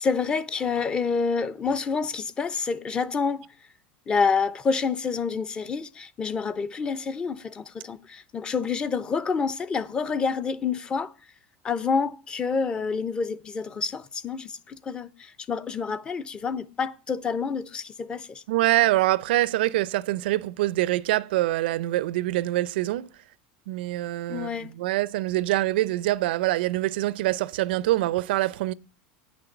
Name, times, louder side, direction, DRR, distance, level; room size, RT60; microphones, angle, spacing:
voice 1, 0.0-3.5 4.1-11.1 11.6-18.4 24.3-24.7, left 5 dB, 15° left, 0.6 m, -28 dB
voice 2, 18.5-23.1 23.7-24.5 24.8-28.7, right 16 dB, 80° right, 0.5 m, -24 dB
9.1 x 6.1 x 7.9 m
supercardioid pair, 165°, 5 cm